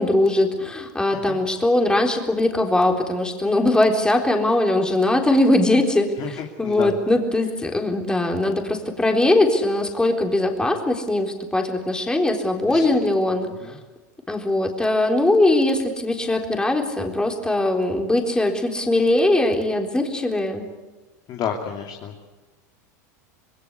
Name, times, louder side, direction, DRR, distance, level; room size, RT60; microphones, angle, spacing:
voice 1, 0.0-13.5 14.3-20.7, left 1 dB, 10° left, 3 dB, 3.9 m, -21 dB
voice 2, 6.2-7.0 12.7-12.9 13.4-13.8 21.3-22.2, left 7 dB, 45° left, 2 dB, 2.9 m, -31 dB
26.5 x 20.5 x 8.3 m, 1.2 s
hypercardioid pair, 100°, 10 cm